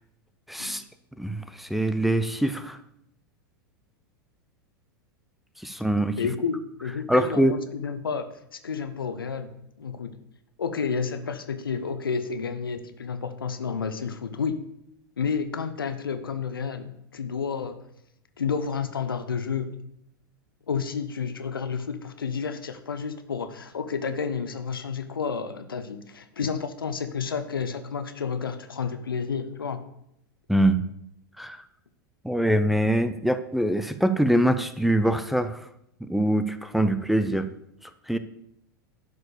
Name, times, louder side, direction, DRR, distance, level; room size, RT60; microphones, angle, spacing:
voice 1, 0.5-0.8 1.2-2.8 5.6-6.2 7.1-7.6 30.5-30.8 31.4-31.6 32.2-35.7 36.0-37.5 38.1-38.2, right 1 dB, ahead, 9 dB, 0.6 m, -23 dB
voice 2, 6.2-8.3 8.6-9.5 9.8-10.2 10.6-14.6 15.2-17.8 18.4-19.7 20.7-29.8, left 6 dB, 80° left, 9 dB, 1.0 m, -30 dB
11.5 x 5.1 x 6.8 m, 0.77 s
figure-of-eight pair, 90°, 12 cm